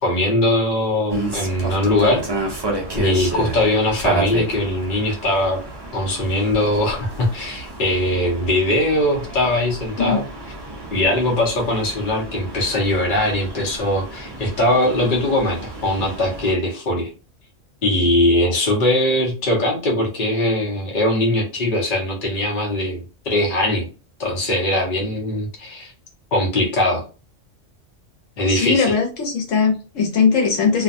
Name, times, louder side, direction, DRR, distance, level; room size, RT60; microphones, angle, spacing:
voice 1, 0.0-2.2 2.9-5.6 5.9-10.2 10.9-17.1 17.8-23.9 24.2-25.9 26.3-27.0 28.4-28.9, left 1 dB, 45° left, -1 dB, 0.9 m, -21 dB
sound 1, 1.1-16.5, right 2 dB, 40° right, 0.3 m, -31 dB
voice 2, 28.5-30.8, left 5 dB, 80° left, 1 dB, 1.1 m, -19 dB
2.5 x 2.2 x 2.5 m, 0.34 s
omnidirectional pair, 1.3 m